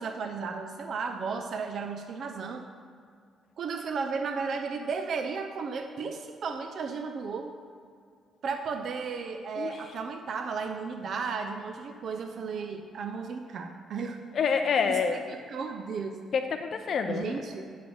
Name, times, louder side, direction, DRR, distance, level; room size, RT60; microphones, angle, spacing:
voice 1, 0.0-2.6 3.6-7.5 8.4-14.2 14.9-15.0 15.3-16.2 17.1-17.7, right 5 dB, 60° right, 5 dB, 0.6 m, -34 dB
voice 2, 14.3-15.4 16.3-17.3, left 6 dB, 60° left, 6 dB, 0.5 m, -27 dB
8.2 x 6.1 x 6.2 m, 2.3 s
cardioid pair, 90°, 0 cm